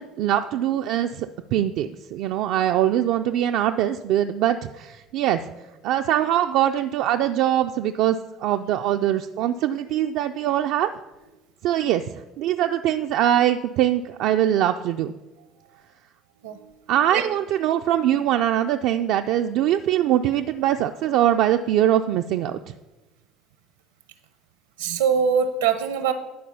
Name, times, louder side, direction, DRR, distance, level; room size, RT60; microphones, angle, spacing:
voice 1, 0.0-5.4 5.8-10.9 11.6-15.1 16.9-22.6, right 11 dB, 70° right, 5 dB, 0.3 m, -22 dB
voice 2, 24.8-26.1, right 7 dB, 90° right, 10 dB, 0.8 m, -22 dB
11.0 x 4.3 x 5.5 m, 1.1 s
hypercardioid pair, 75°, 0 cm